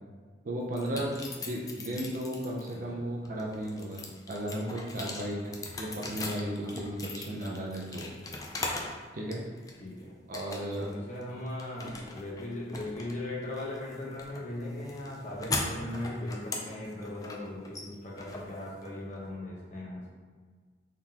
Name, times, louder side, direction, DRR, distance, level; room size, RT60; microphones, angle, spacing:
voice 1, 0.4-4.0 4.3-5.4 5.8-8.1 9.1-9.4 10.3-10.9, right 1 dB, 45° right, -2 dB, 0.5 m, -34 dB
sound 1, 0.7-2.7 3.3-9.0 9.3-9.9 10.3-10.9 11.2-19.1, left 2 dB, 20° left, 0.4 m, -39 dB
voice 2, 2.7-3.0 6.6-6.7 9.8-10.2 10.7-20.1, left 1 dB, 40° left, -4 dB, 0.9 m, -39 dB
3.7 x 3.5 x 2.8 m, 1.5 s
head